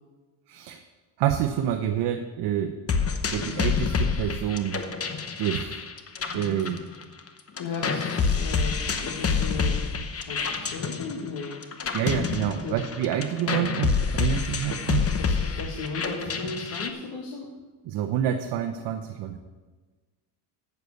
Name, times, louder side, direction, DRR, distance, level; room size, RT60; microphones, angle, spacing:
voice 1, 0.5-0.8 1.2-2.8 3.3-4.8 5.4-5.8 6.3-6.8 11.9-15.0 17.8-19.4, right 10 dB, 55° right, 6 dB, 0.8 m, -27 dB
sound 1, 2.9-7.3 7.6-16.9, left 5 dB, 30° left, 1.0 m, -28 dB
voice 2, 7.6-8.7 9.0-9.9 10.1-11.6 12.6-12.8 13.4-13.5 15.2-17.5, left 4 dB, 55° left, 0 dB, 1.7 m, -36 dB
8.1 x 6.8 x 8.2 m, 1.3 s
supercardioid pair, 95°, 49 cm